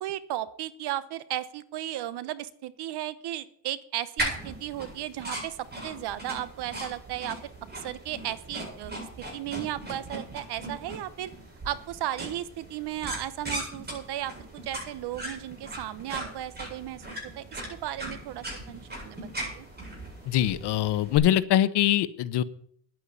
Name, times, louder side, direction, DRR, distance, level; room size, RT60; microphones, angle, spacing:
voice 1, 0.0-7.4 7.8-11.3 11.6-14.3 14.6-19.7, right 13 dB, 70° right, 16 dB, 1.0 m, -35 dB
sound 1, 4.2-21.2, right 1 dB, 25° right, 8.0 m, -39 dB
voice 2, 20.2-22.4, left 12 dB, 70° left, 14 dB, 1.0 m, -23 dB
10.5 x 9.4 x 8.3 m, 0.63 s
cardioid pair, 115°, 42 cm